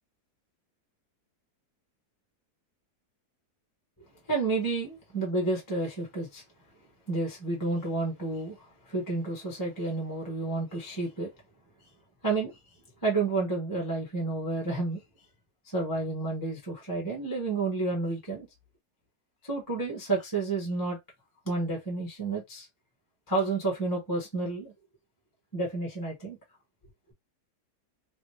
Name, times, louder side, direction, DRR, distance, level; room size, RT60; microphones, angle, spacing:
voice 1, 4.3-6.4 7.1-11.3 12.2-12.6 13.0-15.0 15.7-18.5 19.4-21.0 21.4-22.7 23.3-24.7 25.5-26.4, right 3 dB, 15° left, 1.0 m, -30 dB
3.2 x 2.4 x 3.2 m
omnidirectional pair, 1.7 m